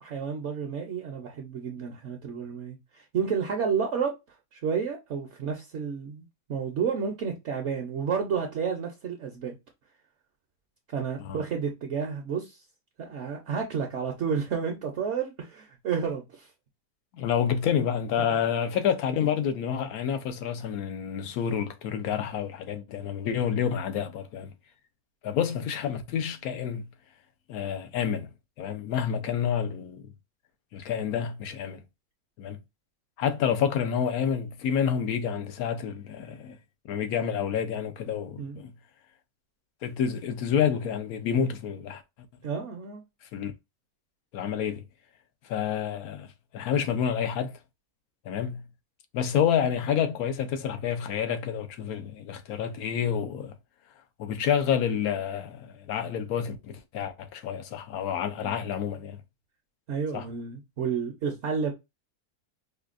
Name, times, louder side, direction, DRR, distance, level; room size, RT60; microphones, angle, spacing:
voice 1, 0.0-9.5 10.9-12.6 13.0-16.5 18.3-18.4 23.7-23.8 38.4-38.6 42.4-43.0 58.4-58.5 59.9-61.7, right 6 dB, 60° right, 0.9 m, -31 dB
voice 2, 17.1-24.5 25.2-26.9 27.5-28.3 28.6-30.0 30.7-31.8 32.4-32.6 33.2-36.6 36.9-38.7 39.8-42.0 43.3-43.5 44.3-44.8 45.5-46.3 46.5-47.6 48.2-48.6 49.1-53.5 54.2-59.2 60.1-60.3, left 8 dB, 80° left, 1.1 m, -28 dB
5.0 x 2.3 x 2.4 m
omnidirectional pair, 1.6 m